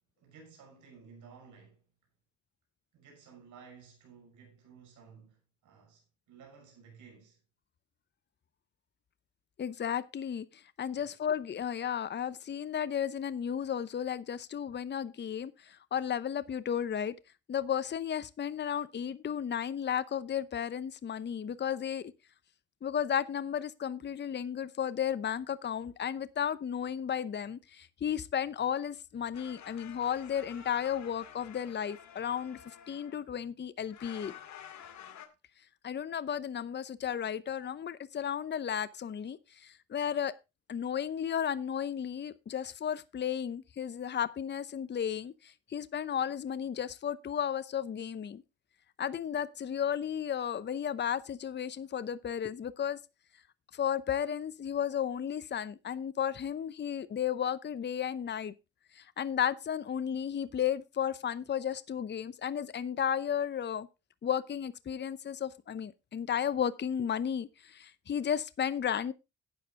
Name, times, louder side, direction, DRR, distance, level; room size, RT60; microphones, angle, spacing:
voice 1, 0.2-1.8 2.9-7.4 10.9-11.2, right 6 dB, 80° right, 5.9 m, -55 dB
voice 2, 9.6-17.1 17.5-22.1 22.8-34.3 35.8-40.3 40.7-48.4 49.0-53.0 53.7-58.5 58.9-63.9 64.2-69.1, left 8 dB, 35° left, 0.8 m, -34 dB
sound 1, 29.3-33.2 33.9-35.3, left 9 dB, 70° left, 2.1 m, -50 dB
12.0 x 8.9 x 3.7 m
cardioid pair, 90°, 30 cm